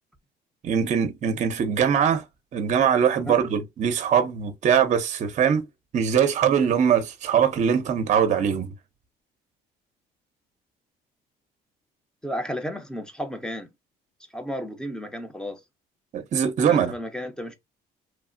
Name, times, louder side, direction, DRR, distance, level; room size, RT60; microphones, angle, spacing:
voice 1, 0.6-2.2 2.5-5.7 5.9-8.7 16.1-16.9, right 8 dB, 45° right, 0.6 m, -22 dB
voice 2, 12.2-13.7 14.3-15.6 16.7-17.5, equal, 5° left, 0.6 m, -33 dB
3.0 x 2.0 x 2.4 m
cardioid pair, 110°, 17 cm